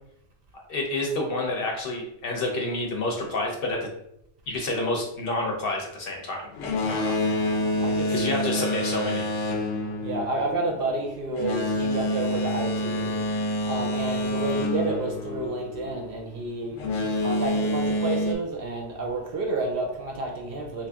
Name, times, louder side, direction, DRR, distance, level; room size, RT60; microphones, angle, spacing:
voice 1, 0.5-3.8 4.5-6.4 6.9-7.1 8.1-9.2, left 2 dB, 60° left, 1 dB, 0.8 m, -28 dB
Boat Water vehicle, 6.5-16.0 16.7-18.3, left 1 dB, 85° left, 0.9 m, -27 dB
voice 2, 7.8-8.1 10.0-13.2 13.7-16.8 17.2-20.9, right 2 dB, 60° right, 1 dB, 0.7 m, -30 dB
2.9 x 2.5 x 3.4 m, 0.79 s
omnidirectional pair, 1.2 m